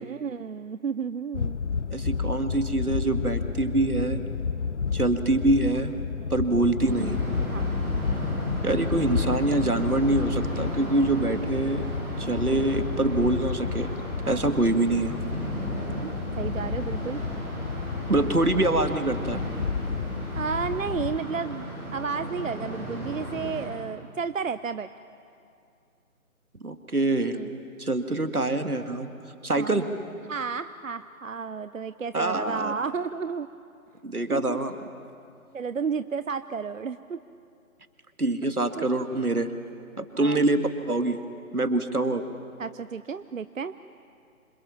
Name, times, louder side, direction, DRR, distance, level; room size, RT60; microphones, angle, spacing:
voice 1, 0.0-1.6 7.4-7.7 14.2-14.6 15.7-16.1 16.4-17.2 18.2-18.3 20.3-24.9 27.3-27.6 29.6-29.8 30.3-33.5 34.3-34.6 35.5-37.2 38.8-39.2 40.1-40.4 42.6-43.7, right 5 dB, 60° right, 13 dB, 0.7 m, -32 dB
sound 1, 1.3-21.2, left 5 dB, 55° left, 0.7 m, -31 dB
voice 2, 1.9-4.2 4.9-5.9 6.3-7.2 8.6-11.8 12.2-13.9 14.3-15.2 18.1-19.4 26.6-27.4 27.8-29.1 29.4-29.8 32.1-32.7 34.0-34.7 38.2-39.5 40.0-40.6 40.9-41.2 41.5-42.2, right 2 dB, 90° right, 7 dB, 2.1 m, -25 dB
sound 2, 6.8-23.7, right 1 dB, 5° right, 6.8 m, -35 dB
27.0 x 26.5 x 7.4 m, 2.5 s
figure-of-eight pair, 150°, 43 cm